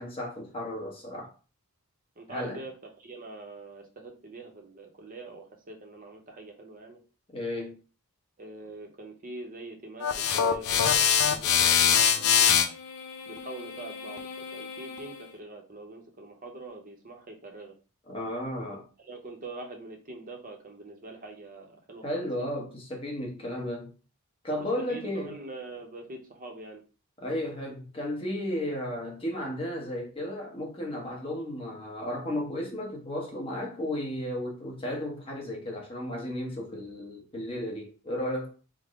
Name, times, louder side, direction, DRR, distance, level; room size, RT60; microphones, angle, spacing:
voice 1, 0.0-1.3 2.3-2.6 7.3-7.8 18.1-18.8 22.0-23.9 24.4-25.4 27.2-38.5, left 1 dB, 25° left, 0.9 m, -34 dB
voice 2, 2.2-7.0 8.4-12.7 13.2-17.7 19.0-22.5 24.9-26.8, right 2 dB, 40° right, 0.7 m, -44 dB
sound 1, 10.0-15.2, left 8 dB, 85° left, 0.4 m, -25 dB
3.5 x 2.1 x 3.5 m
head